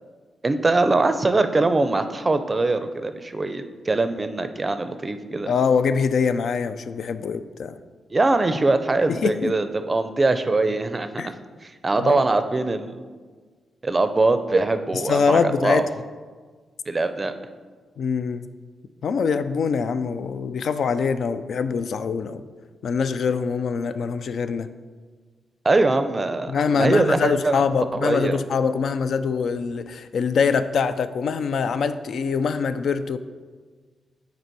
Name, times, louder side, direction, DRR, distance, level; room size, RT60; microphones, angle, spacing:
voice 1, 0.4-5.5 8.1-11.3 11.6-13.0 13.8-15.8 16.9-17.3 25.6-27.6 27.9-28.4, right 3 dB, 30° right, 10 dB, 0.4 m, -22 dB
voice 2, 5.5-7.7 9.1-9.5 11.2-11.3 12.0-12.2 15.1-15.8 18.0-18.5 19.0-22.4 22.8-24.7 26.5-33.2, left 5 dB, 70° left, 11 dB, 0.3 m, -23 dB
6.7 x 4.1 x 4.6 m, 1.5 s
cardioid pair, 85°, 0 cm